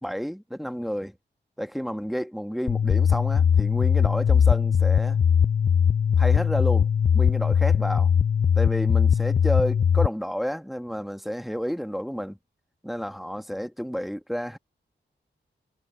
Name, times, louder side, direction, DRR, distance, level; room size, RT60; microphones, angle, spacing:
voice 1, 0.0-1.2 1.6-5.2 6.2-8.1 8.6-12.4 12.8-14.6, equal, ahead, 1.9 m, -31 dB
sound 1, 2.7-10.1, left 7 dB, 40° left, 0.4 m, -20 dB
cardioid pair, 50°, 20 cm